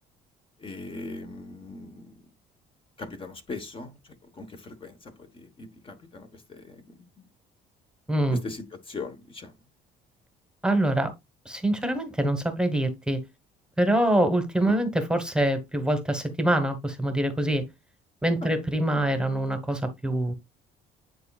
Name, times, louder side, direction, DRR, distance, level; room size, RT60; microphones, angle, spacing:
voice 1, 0.6-2.2 3.0-4.0 4.3-7.3 8.3-9.5 14.6-14.8 18.4-18.5 18.9-19.0, left 3 dB, 30° left, 1.2 m, -40 dB
voice 2, 8.1-8.4 10.6-11.1 11.4-13.2 13.8-17.6 18.2-20.3, right 1 dB, 5° right, 1.2 m, -25 dB
9.6 x 4.1 x 2.4 m
cardioid pair, 110°, 17 cm